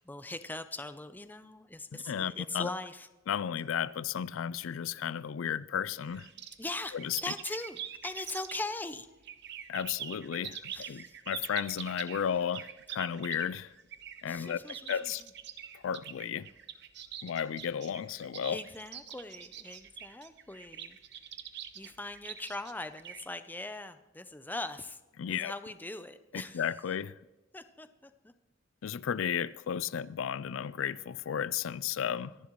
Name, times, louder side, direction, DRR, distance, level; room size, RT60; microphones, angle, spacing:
voice 1, 0.0-3.1 6.6-7.0 7.2-9.1 10.7-11.2 14.3-14.9 18.5-21.0 21.7-26.6 27.5-28.3, left 2 dB, 10° left, 0.6 m, -41 dB
voice 2, 1.9-2.7 3.3-6.3 6.9-7.2 9.7-13.8 14.2-14.6 14.9-15.2 15.7-16.5 17.2-18.6 25.2-25.5 26.3-27.2 28.8-32.4, left 8 dB, 90° left, 0.4 m, -34 dB
sound 1, 6.0-8.8 9.2-23.2, right 9 dB, 60° right, 0.9 m, -44 dB
25.5 x 11.0 x 3.1 m
head